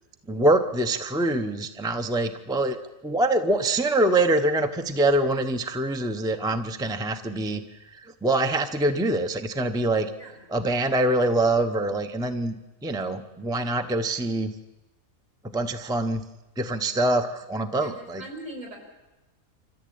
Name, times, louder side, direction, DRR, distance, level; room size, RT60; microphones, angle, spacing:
voice 1, 0.3-2.8 3.0-7.6 7.9-10.1 10.5-12.5 12.8-14.5 15.5-16.2 16.6-18.2, right 2 dB, 5° right, 6 dB, 0.8 m, -24 dB
voice 2, 17.8-18.8, right 1 dB, 65° right, 0 dB, 6.2 m, -40 dB
26.0 x 14.5 x 8.7 m, 1.0 s
omnidirectional pair, 1.5 m